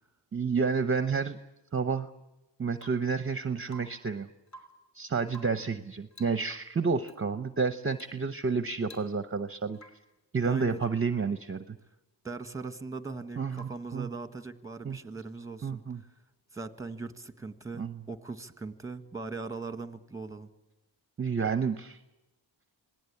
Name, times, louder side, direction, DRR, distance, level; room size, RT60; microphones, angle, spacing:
voice 1, 0.3-1.4 1.7-2.1 2.6-4.3 4.9-9.8 10.3-11.8 13.4-14.1 14.8-15.0 15.6-16.0 17.8-18.0 21.2-22.0, right 5 dB, 30° right, 11 dB, 0.8 m, -30 dB
Rain / Water tap faucet / Drip, 2.7-3.1 3.7-4.1 4.4-4.9 5.3-5.7 6.1-6.5 7.0-7.2 7.9-8.2 8.5-8.6 8.8-9.4 9.7-10.1 10.8-11.1 13.5-14.0 15.9-16.0, right 1 dB, 35° left, 3.1 m, -53 dB
voice 2, 10.4-10.8 12.2-15.8 16.5-20.5, right 3 dB, 5° right, 9 dB, 1.6 m, -40 dB
26.5 x 18.5 x 8.4 m, 0.97 s
wide cardioid pair, 85°, 46 cm